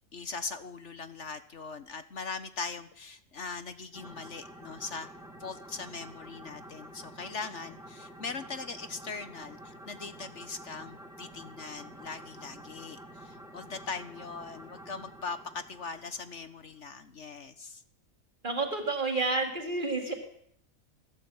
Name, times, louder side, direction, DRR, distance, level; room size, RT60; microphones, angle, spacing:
voice 1, 0.1-5.1 5.4-17.8, left 4 dB, 60° left, 11 dB, 1.5 m, -40 dB
sound 1, 3.9-16.8, right 1 dB, ahead, 4.3 m, -49 dB
voice 2, 18.4-20.1, right 3 dB, 35° right, 4 dB, 4.0 m, -30 dB
20.5 x 16.5 x 9.0 m, 0.68 s
omnidirectional pair, 1.4 m